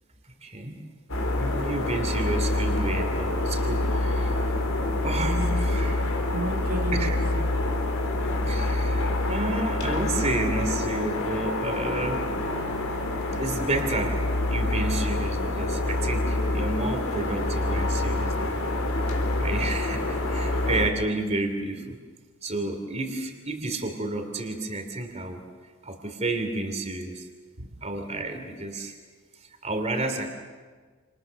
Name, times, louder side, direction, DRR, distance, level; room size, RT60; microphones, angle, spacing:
voice 1, 0.4-0.8 1.4-4.4 5.0-6.0 6.9-7.2 8.4-12.3 13.4-18.6 19.4-22.0 22.4-25.4 25.8-27.3 27.8-28.9 29.4-30.3, right 2 dB, 30° right, 6 dB, 3.0 m, -31 dB
sound 1, 1.1-20.9, left 2 dB, 75° left, 4.1 m, -26 dB
voice 2, 5.7-7.7 27.6-27.7, right 1 dB, 80° right, 2 dB, 2.3 m, -34 dB
29.5 x 28.0 x 6.6 m, 1.5 s
head